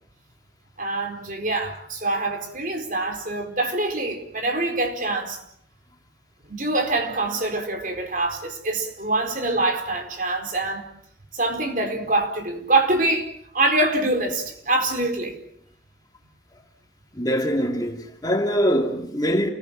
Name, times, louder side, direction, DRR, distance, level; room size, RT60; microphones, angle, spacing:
voice 1, 0.8-5.4 6.5-10.8 11.3-15.4, right 2 dB, 45° right, 4.5 m, -25 dB
voice 2, 17.1-19.5, equal, 20° left, 2.4 m, -23 dB
29.5 x 21.0 x 7.5 m
head